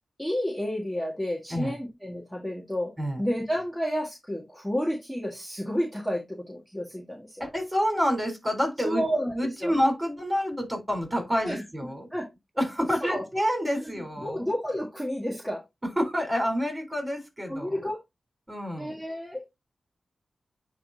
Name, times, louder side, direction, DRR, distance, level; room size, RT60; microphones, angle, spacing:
voice 1, 0.2-2.9 3.2-7.4 8.8-9.4 9.6-9.7 11.4-11.6 12.1-12.3 13.0-13.2 13.8-15.6 17.5-18.0 18.8-19.5, equal, 5° left, -2 dB, 1.7 m, -31 dB
voice 2, 7.4-9.0 9.3-12.1 12.6-14.5 16.0-17.8 18.5-18.9, equal, 20° right, 4 dB, 3.8 m, -28 dB
10.0 x 3.4 x 2.8 m, 0.21 s
cardioid pair, 65°, 0 cm